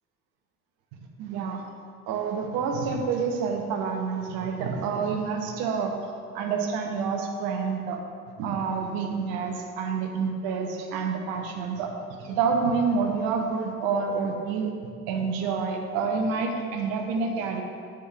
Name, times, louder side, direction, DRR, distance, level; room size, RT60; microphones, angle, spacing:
voice 1, 1.2-1.6 2.1-5.9 6.3-8.0 8.4-11.9 12.2-14.7 15.1-17.6, right 5 dB, 50° right, 4 dB, 0.8 m, -28 dB
8.2 x 4.4 x 3.3 m, 2.3 s
figure-of-eight pair, 60°, 45 cm